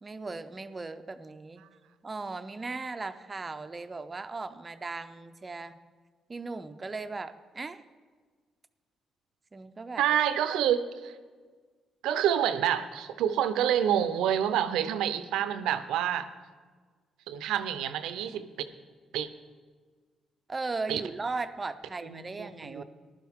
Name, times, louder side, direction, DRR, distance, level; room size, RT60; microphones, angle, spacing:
voice 1, 0.0-1.6 2.0-5.8 6.3-7.8 9.5-10.0 20.5-22.8, right 3 dB, 25° right, 10 dB, 0.5 m, -37 dB
voice 2, 10.0-11.1 12.0-16.3 17.3-18.5 19.1-19.3 20.9-21.0 22.1-22.8, right 10 dB, 90° right, 12 dB, 0.6 m, -28 dB
15.0 x 11.5 x 3.6 m, 1.5 s
cardioid pair, 90°, 0 cm